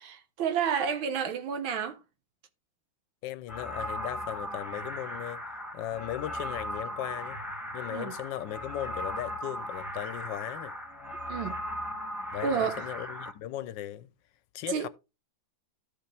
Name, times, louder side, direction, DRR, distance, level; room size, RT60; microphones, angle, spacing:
voice 1, 0.0-2.0 7.9-8.1 11.3-11.6 12.4-12.9 14.7-14.9, right 7 dB, 80° right, 1.9 m, -30 dB
voice 2, 3.2-5.4 5.7-7.4 7.7-10.8 12.3-14.1 14.5-14.9, left 12 dB, 75° left, 1.2 m, -37 dB
sound 1, 3.5-13.3, equal, ahead, 1.0 m, -37 dB
13.5 x 5.0 x 3.3 m
omnidirectional pair, 2.2 m